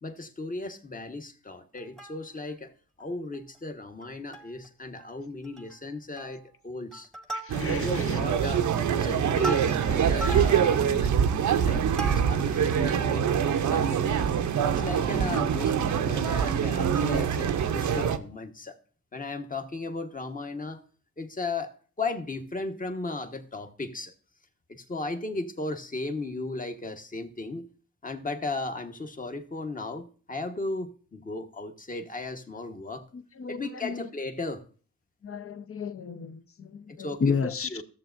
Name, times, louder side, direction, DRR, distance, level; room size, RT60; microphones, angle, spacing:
voice 1, 0.0-2.7 3.0-7.1 7.5-8.7 8.9-11.2 11.6-13.3 13.7-14.4 14.7-18.8 19.1-20.8 21.2-24.1 24.7-27.7 28.0-33.0 33.5-34.6 37.0-37.8, left 3 dB, 30° left, 6 dB, 1.2 m, -36 dB
Plucked string instrument, 1.8-2.6 3.0-3.1 3.3-3.6 4.0-4.7 5.0-5.1 5.4-5.8 6.2-6.5 6.9-8.0 8.5-12.6 13.1-13.2, right 2 dB, ahead, 1.1 m, -38 dB
voice 2, 7.3-8.2 33.1-34.1 35.2-37.8, left 5 dB, 50° left, 11 dB, 0.8 m, -33 dB
sound 1, 7.5-18.2, right 8 dB, 75° right, 0.7 m, -25 dB
14.0 x 7.1 x 2.6 m, 0.40 s
cardioid pair, 70°, 29 cm